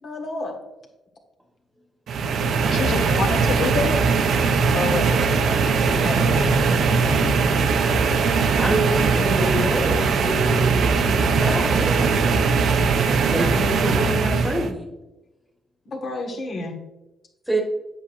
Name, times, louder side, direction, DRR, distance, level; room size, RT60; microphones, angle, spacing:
voice 1, 0.0-0.6 5.6-7.7 15.8-16.8, left 2 dB, 55° left, 2 dB, 1.6 m, -30 dB
sound 1, 2.1-14.7, right 5 dB, 65° right, 0.7 m, -20 dB
voice 2, 2.7-4.0 4.7-5.6 6.1-6.4, left 4 dB, 70° left, 4 dB, 1.1 m, -27 dB
voice 3, 8.6-12.7 13.0-14.8 17.5-17.6, equal, ahead, -1 dB, 1.6 m, -27 dB
8.5 x 6.5 x 2.6 m, 1.0 s
cardioid pair, 90°, 0 cm